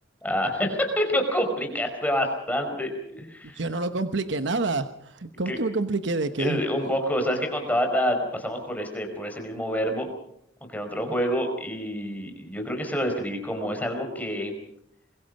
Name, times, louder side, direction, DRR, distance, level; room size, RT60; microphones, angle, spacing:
voice 1, 0.2-3.6 5.5-5.6 6.4-10.1 10.7-14.5, equal, 10° left, 4 dB, 4.8 m, -27 dB
voice 2, 3.5-6.6, right 3 dB, 65° right, 9 dB, 1.1 m, -27 dB
25.0 x 22.5 x 5.4 m, 0.71 s
head